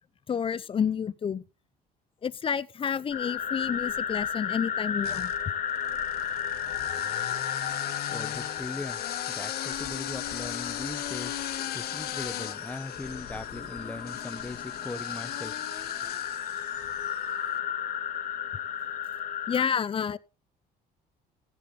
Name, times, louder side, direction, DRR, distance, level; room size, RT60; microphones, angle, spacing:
voice 1, 0.3-1.4 2.2-5.3 19.5-20.2, left 7 dB, 30° left, 0.6 m, -29 dB
sound 1, 3.1-19.7, left 8 dB, 50° left, 1.8 m, -34 dB
sound 2, 3.6-4.3 5.0-17.3, left 12 dB, 70° left, 1.5 m, -38 dB
voice 2, 8.1-9.0 9.3-11.4 11.7-15.5, left 2 dB, 10° left, 1.2 m, -39 dB
15.0 x 8.5 x 4.0 m
cardioid pair, 110°, 17 cm